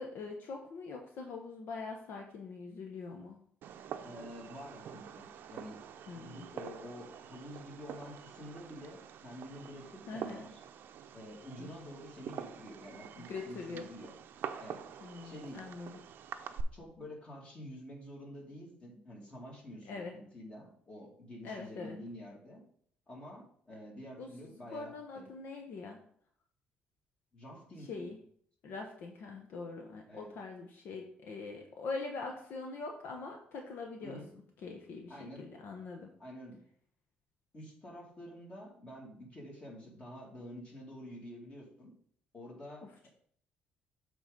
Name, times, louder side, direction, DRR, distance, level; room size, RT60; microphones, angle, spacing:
voice 1, 0.0-3.4 6.1-6.5 10.1-10.5 11.6-11.7 13.2-13.9 15.0-16.0 19.9-20.2 21.4-22.0 24.2-24.3 24.7-26.0 27.8-28.2 28.6-34.2 34.6-36.1 42.8-43.1, left 4 dB, 65° left, 2 dB, 1.0 m, -43 dB
Fireworks, 3.6-16.6, right 9 dB, 65° right, 0.6 m, -46 dB
voice 2, 4.0-5.9 6.1-10.5 11.1-14.1 14.6-14.8 15.2-15.6 16.7-22.6 23.1-25.3 27.3-28.1 30.1-30.3 34.0-34.3 35.1-35.5 36.2-36.6 37.5-41.9 42.3-43.1, left 1 dB, 30° left, -2 dB, 2.5 m, -48 dB
7.9 x 3.8 x 5.3 m, 0.62 s
cardioid pair, 115°, 4 cm